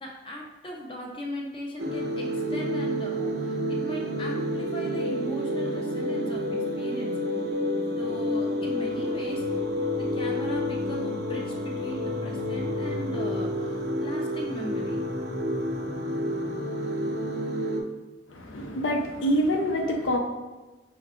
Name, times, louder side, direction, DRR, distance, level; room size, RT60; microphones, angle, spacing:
voice 1, 0.0-6.4 6.8-7.2 7.9-9.6 10.1-15.0, equal, 25° left, -1 dB, 0.5 m, -38 dB
sound 1, 1.8-17.8, equal, 55° right, 0.5 m, -29 dB
voice 2, 18.3-20.2, equal, 80° left, 2 dB, 0.6 m, -26 dB
5.7 x 2.2 x 3.6 m, 1.2 s
head